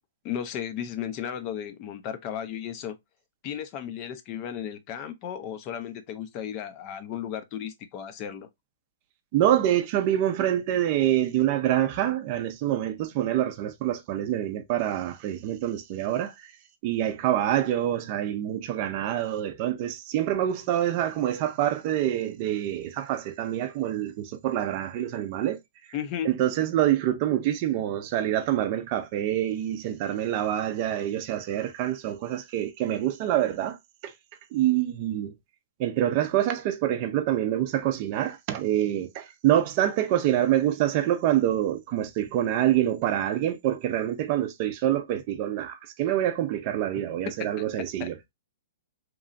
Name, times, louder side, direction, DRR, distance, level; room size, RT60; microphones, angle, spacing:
voice 1, 0.2-3.0 3.4-8.5 25.9-26.3 47.6-47.7 48.0-48.1, left 9 dB, 35° left, 0.5 m, -34 dB
voice 2, 9.3-16.5 16.8-25.6 26.2-33.8 34.0-34.1 34.5-35.3 35.8-48.2, right 12 dB, 40° right, 0.4 m, -26 dB
2.9 x 2.3 x 2.5 m
hypercardioid pair, 145°, 0 cm